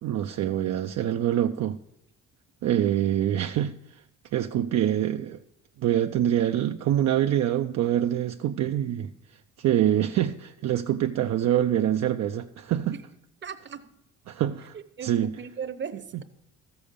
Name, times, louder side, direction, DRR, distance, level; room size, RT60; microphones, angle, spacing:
voice 1, 0.0-1.8 2.6-3.8 4.3-5.4 5.8-9.1 9.6-12.9 14.3-14.8 15.0-15.4, right 11 dB, 60° right, 0.5 m, -25 dB
voice 2, 13.4-13.9 14.7-16.2, right 7 dB, 40° right, 0.8 m, -38 dB
13.5 x 6.9 x 5.1 m
cardioid pair, 90°, 30 cm